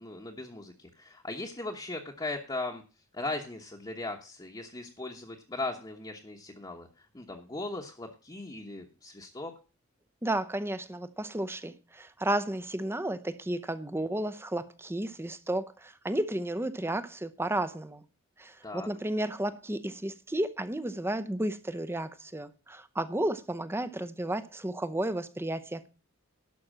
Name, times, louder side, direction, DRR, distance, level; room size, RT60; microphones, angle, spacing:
voice 1, 0.0-2.8 3.1-9.5 18.6-18.9, left 2 dB, 20° left, 1.1 m, -38 dB
voice 2, 10.2-18.0 18.4-25.9, right 1 dB, 10° right, 0.7 m, -33 dB
11.5 x 5.9 x 7.4 m
head